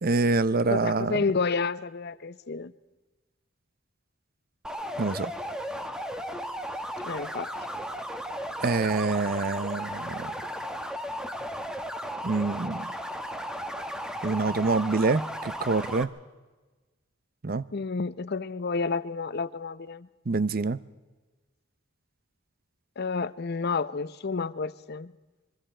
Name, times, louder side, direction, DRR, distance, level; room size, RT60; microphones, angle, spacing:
voice 1, 0.0-1.2 5.0-5.3 8.6-10.3 12.2-12.9 14.2-16.1 17.4-17.6 20.3-20.8, right 3 dB, 45° right, 0.7 m, -26 dB
voice 2, 0.7-2.7 7.0-7.5 17.7-20.1 23.0-25.1, left 4 dB, 55° left, 0.7 m, -30 dB
sound 1, 4.6-16.0, equal, 5° right, 1.1 m, -35 dB
26.0 x 23.0 x 4.4 m
head